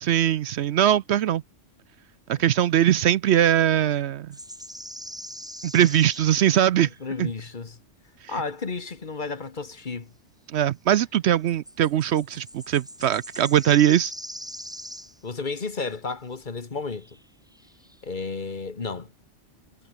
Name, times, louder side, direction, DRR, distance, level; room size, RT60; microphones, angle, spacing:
voice 1, 0.0-1.4 2.3-4.3 5.6-6.9 7.2-7.3 10.5-14.1, right 11 dB, 70° right, 0.8 m, -21 dB
sound 1, 4.3-6.5 6.9-7.0 11.5-15.2 16.9-17.2 17.5-18.0, equal, 5° right, 2.7 m, -41 dB
voice 2, 6.8-7.8 8.3-10.1 15.2-17.1 18.0-19.1, left 4 dB, 40° left, 1.5 m, -32 dB
omnidirectional pair, 1.3 m